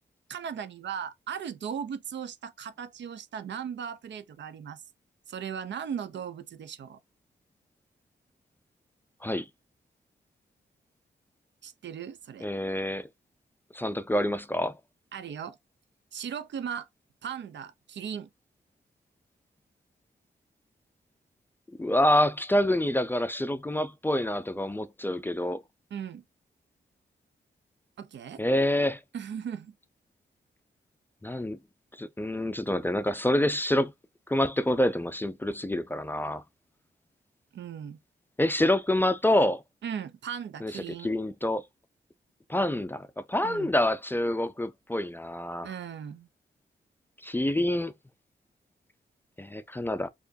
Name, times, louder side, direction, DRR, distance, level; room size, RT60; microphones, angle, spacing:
voice 1, 0.3-4.8 5.3-7.0 11.6-12.5 15.1-15.6 16.1-16.9 17.2-18.3 25.9-26.2 28.0-28.4 29.1-29.7 37.5-38.0 39.8-41.1 43.4-43.7 45.6-46.3, right 8 dB, 85° right, 0.6 m, -37 dB
voice 2, 12.4-13.1 13.7-14.8 21.8-25.6 28.4-29.0 31.2-31.6 32.0-33.9 34.3-36.4 38.4-39.6 40.6-41.6 42.5-45.7 47.2-47.9 49.4-50.1, left 1 dB, 10° left, 0.3 m, -27 dB
4.4 x 2.9 x 2.6 m
wide cardioid pair, 140°, 18 cm